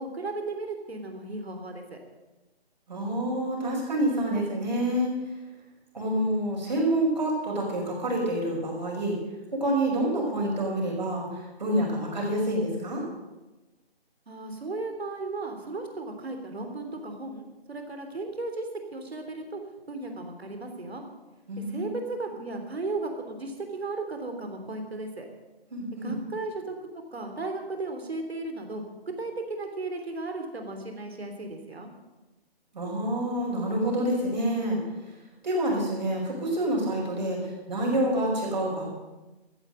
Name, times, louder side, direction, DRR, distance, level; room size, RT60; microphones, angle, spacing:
voice 1, 0.0-2.0 14.3-19.6 19.9-21.0 21.7-25.3 26.0-26.7 27.1-28.8 29.2-31.9, right 2 dB, 75° right, 4 dB, 3.3 m, -35 dB
voice 2, 2.9-5.1 5.9-9.2 9.5-13.0 21.5-21.9 25.7-26.2 32.7-34.8 35.4-37.4 37.7-38.9, right 1 dB, 45° right, -2 dB, 5.6 m, -27 dB
14.5 x 9.2 x 7.7 m, 1.1 s
hypercardioid pair, 175°, 31 cm